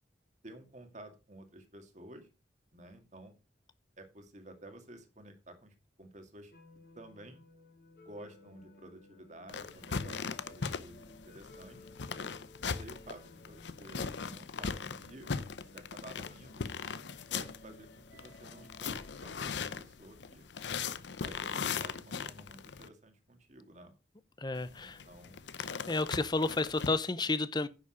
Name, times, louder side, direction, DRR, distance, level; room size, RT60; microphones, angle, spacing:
voice 1, 0.4-2.3 2.7-3.4 4.0-6.5 7.0-7.4 8.0-11.9 12.6-15.3 15.7-16.6 17.3-20.5 21.2-23.9 24.8-25.4, right 1 dB, 40° right, 2.1 m, -52 dB
sound 1, 6.5-19.8, left 2 dB, 55° left, 3.3 m, -57 dB
sound 2, 9.5-22.9 24.6-26.9, left 5 dB, 75° left, 0.7 m, -39 dB
voice 2, 24.4-25.0 25.9-27.7, left 3 dB, 25° left, 0.7 m, -31 dB
10.0 x 7.0 x 5.1 m
head